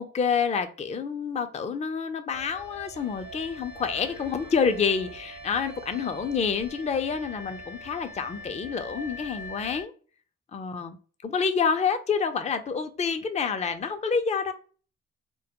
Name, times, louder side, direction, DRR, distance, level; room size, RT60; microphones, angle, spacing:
voice 1, 0.0-9.9 10.5-11.0 11.2-14.5, left 6 dB, 20° left, 0.4 m, -28 dB
sound 1, 2.3-9.8, equal, 65° right, 0.7 m, -43 dB
2.2 x 2.1 x 2.8 m
supercardioid pair, 45°, 31 cm